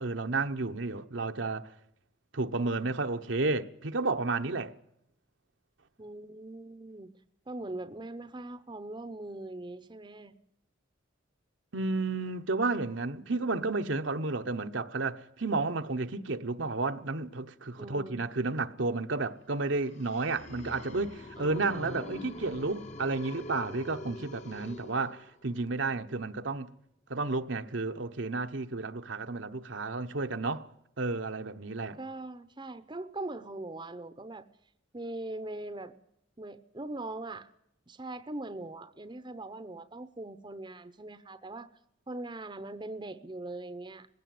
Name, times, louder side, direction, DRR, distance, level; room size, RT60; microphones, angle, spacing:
voice 1, 0.0-1.7 2.3-4.7 11.7-26.7 27.1-30.7 31.0-32.0, right 3 dB, 70° right, 1.1 m, -32 dB
voice 2, 6.0-7.1 7.5-10.3 17.8-18.3 21.4-22.3 31.9-34.5 34.9-35.9 36.4-37.5 37.9-41.7 42.1-44.1, right 2 dB, 25° right, 0.8 m, -41 dB
sound 1, 19.7-25.6, left 2 dB, 35° left, 1.1 m, -45 dB
20.5 x 16.5 x 9.5 m
head